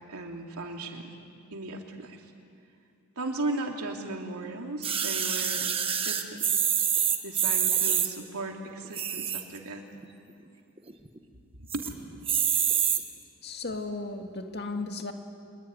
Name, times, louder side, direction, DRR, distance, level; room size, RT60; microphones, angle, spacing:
voice 1, 0.1-1.2 1.5-2.2 3.2-6.6 7.2-9.8 11.6-11.9, right 2 dB, 90° right, 2 dB, 3.0 m, -36 dB
sound 1, 4.8-8.1 8.8-9.6 10.0-10.1 10.3-10.4 10.8-11.2 11.7-11.9 12.3-13.0 13.7-13.8, right 8 dB, 25° right, 1.4 m, -26 dB
voice 2, 13.4-15.1, left 3 dB, 50° left, 4 dB, 2.1 m, -35 dB
25.0 x 21.5 x 9.8 m, 2.4 s
head